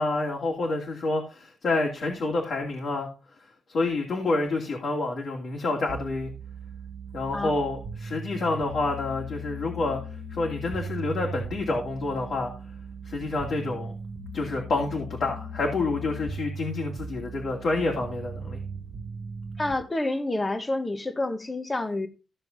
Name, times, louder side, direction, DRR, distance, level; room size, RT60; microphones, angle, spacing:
voice 1, 0.0-3.1 3.7-6.3 7.1-10.0 10.3-12.5 13.0-13.9 14.3-18.6, left 2 dB, 55° left, 2.4 m, -28 dB
sound 1, 5.9-19.7, right 2 dB, 35° right, 1.7 m, -38 dB
voice 2, 19.6-22.1, left 2 dB, 15° left, 1.2 m, -28 dB
14.5 x 6.8 x 4.0 m
wide cardioid pair, 160°, 0 cm